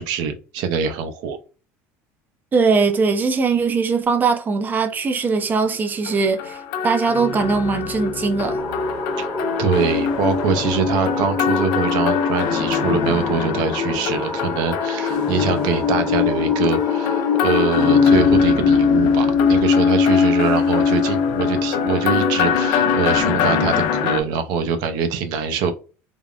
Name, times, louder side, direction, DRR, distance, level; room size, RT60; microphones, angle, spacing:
voice 1, 0.0-1.4 9.2-9.3 9.6-25.7, right 6 dB, 70° right, 0.6 m, -23 dB
voice 2, 2.5-8.6, right 4 dB, 25° right, 0.4 m, -20 dB
sound 1, 6.1-24.2, left 6 dB, 75° left, 0.5 m, -20 dB
sound 2, 8.6-18.0, left 1 dB, ahead, 0.8 m, -31 dB
3.4 x 2.1 x 2.4 m
supercardioid pair, 115°, 7 cm